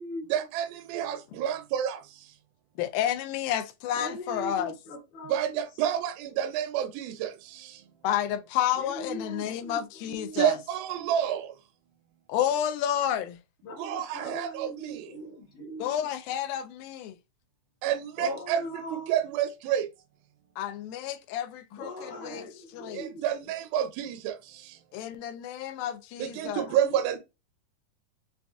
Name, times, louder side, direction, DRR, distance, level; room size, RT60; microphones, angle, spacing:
voice 1, 0.3-2.0 5.3-7.3 10.4-11.5 13.8-15.0 17.8-18.6 18.9-19.9 22.9-24.4 26.2-27.2, right 10 dB, 80° right, 2.2 m, -29 dB
voice 2, 2.8-4.7 8.0-10.6 12.3-13.4 15.8-17.2 20.6-22.4 22.7-23.0 24.9-26.7, left 10 dB, 80° left, 2.3 m, -30 dB
voice 3, 3.9-5.6 8.7-10.6 11.0-11.1 13.6-16.1 18.2-19.1 21.7-23.2 26.7-27.2, equal, 65° left, 2.7 m, -40 dB
7.0 x 2.5 x 2.3 m
omnidirectional pair, 4.2 m